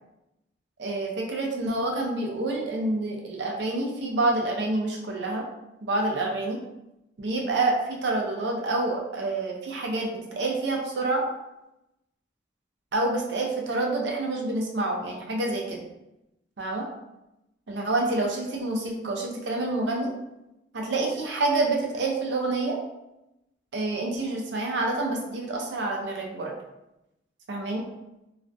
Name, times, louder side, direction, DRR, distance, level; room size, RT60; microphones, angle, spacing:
voice 1, 0.8-5.4 5.8-6.6 7.2-11.3 12.9-15.8 16.6-16.9 17.7-20.1 20.7-22.8 23.7-26.5 27.5-27.8, right 2 dB, 75° right, 0 dB, 0.5 m, -27 dB
2.4 x 2.1 x 2.6 m, 0.91 s
head